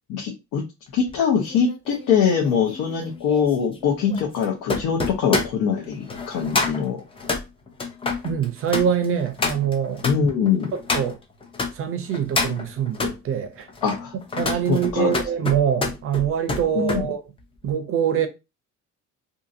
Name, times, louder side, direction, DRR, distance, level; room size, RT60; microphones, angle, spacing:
voice 1, 0.1-0.6 0.9-7.0 10.0-10.7 13.8-14.1 14.7-15.1 16.8-17.0, left 7 dB, 85° left, 0.8 m, -23 dB
sound 1, 1.1-11.7 12.1-13.2 13.7-17.1 17.4-17.7, left 3 dB, 20° left, 0.4 m, -29 dB
voice 2, 8.2-10.1 10.7-11.2 11.7-13.7 14.4-17.2 17.6-18.3, right 8 dB, 45° right, 0.5 m, -24 dB
2.8 x 2.6 x 2.5 m
cardioid pair, 160°, 31 cm